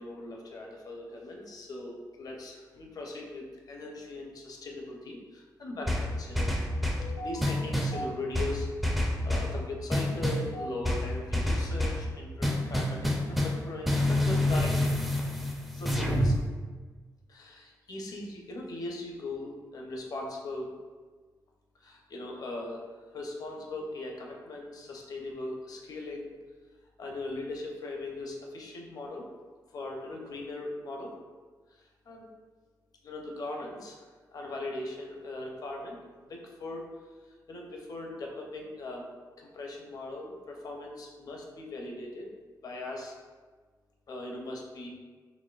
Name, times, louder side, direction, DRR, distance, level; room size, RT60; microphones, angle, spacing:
voice 1, 0.0-6.6 7.0-8.7 8.9-14.9 15.7-16.4 17.3-20.7 21.8-26.3 27.0-29.3 29.7-31.1 31.8-32.3 33.0-36.9 37.5-39.1 39.4-42.3 42.6-43.1 44.1-44.9, left 2 dB, 55° left, 0 dB, 0.6 m, -39 dB
sound 1, 5.9-7.1 7.4-8.0 8.3-9.6 9.9-10.5 10.8-12.0 12.4-16.4, left 1 dB, ahead, 0.4 m, -27 dB
4.1 x 2.9 x 2.4 m, 1.4 s
wide cardioid pair, 125°, 7 cm